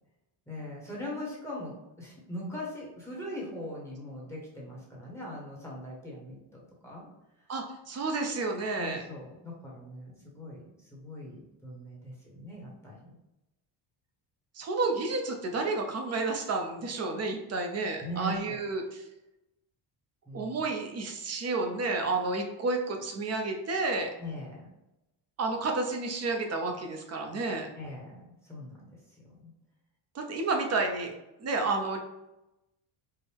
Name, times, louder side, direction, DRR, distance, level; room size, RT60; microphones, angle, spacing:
voice 1, 0.5-7.1 7.4-7.5 8.8-13.1 18.0-18.6 20.3-20.6 24.2-24.7 27.7-28.8 29.1-29.5, equal, 5° left, -5 dB, 1.0 m, -41 dB
voice 2, 7.5-9.0 14.5-19.0 20.3-24.1 25.4-27.7 30.1-31.1 31.4-32.0, right 3 dB, 35° right, 3 dB, 0.6 m, -31 dB
4.4 x 2.1 x 3.4 m, 0.94 s
cardioid pair, 150°, 45 cm